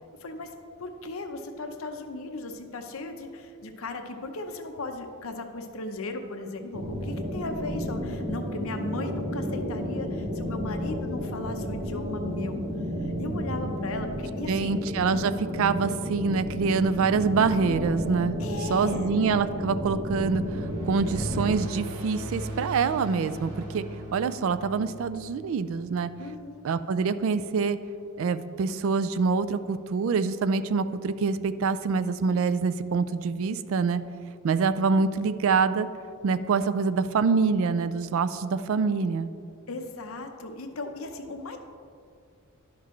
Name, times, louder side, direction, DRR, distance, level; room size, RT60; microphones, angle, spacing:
voice 1, 0.2-0.5 0.8-12.6 13.2-14.7 18.4-19.2 26.2-26.7 39.7-41.6, left 2 dB, 70° left, 6 dB, 0.7 m, -37 dB
sound 1, 6.7-21.6, equal, 30° right, 0.9 m, -32 dB
voice 2, 14.5-18.3 18.7-23.8 24.1-26.1 26.6-27.8 28.2-34.0 34.4-35.9 36.2-39.3, right 5 dB, 65° right, 13 dB, 0.3 m, -25 dB
sound 2, 20.0-26.6, right 1 dB, 85° right, 1.5 m, -39 dB
11.0 x 5.8 x 3.1 m, 2.4 s
head